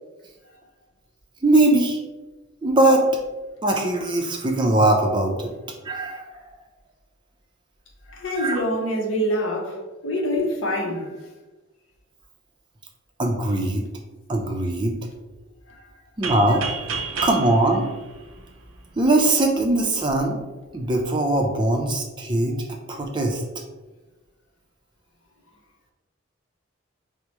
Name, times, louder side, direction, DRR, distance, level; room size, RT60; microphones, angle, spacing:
voice 1, 1.4-2.0 2.6-3.1 3.6-5.5 5.8-6.4 8.4-8.6 13.2-13.9 14.3-15.0 16.2-16.6 17.2-17.9 19.0-20.4 20.7-22.5 22.9-23.4, right 2 dB, 25° right, 0.4 m, -21 dB
voice 2, 8.1-11.2 15.7-15.9, equal, 70° left, 0.7 m, -26 dB
sound 1, 16.2-19.0, right 4 dB, 85° right, 0.5 m, -31 dB
4.6 x 2.0 x 2.9 m
head